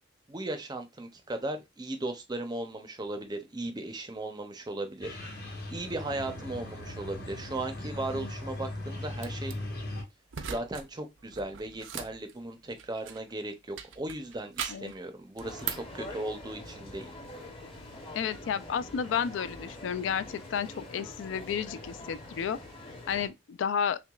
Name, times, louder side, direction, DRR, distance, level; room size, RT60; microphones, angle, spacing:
voice 1, 0.3-5.2 5.7-9.5 10.5-17.1, right 2 dB, 20° right, 0.5 m, -37 dB
sound 1, 5.0-10.0, left 1 dB, 55° left, 1.3 m, -39 dB
sound 2, 9.2-9.5 10.3-10.9 11.2-13.3 13.8-14.9 15.4-16.0, right 8 dB, 85° right, 0.5 m, -39 dB
sound 3, 15.4-23.3, left 1 dB, 30° left, 0.8 m, -45 dB
voice 2, 18.1-22.6 23.1-24.0, left 7 dB, 75° left, 0.3 m, -32 dB
5.8 x 2.2 x 2.3 m
head